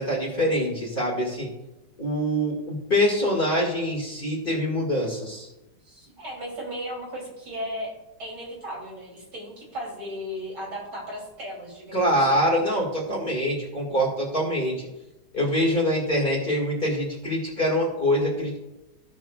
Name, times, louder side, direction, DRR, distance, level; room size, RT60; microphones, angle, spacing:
voice 1, 0.0-1.5 2.0-5.5 11.9-14.9 15.3-18.6, equal, 30° left, -3 dB, 2.0 m, -24 dB
voice 2, 5.8-7.9 8.2-12.5, equal, 60° right, -4 dB, 3.5 m, -36 dB
15.5 x 6.2 x 2.3 m, 0.97 s
omnidirectional pair, 2.0 m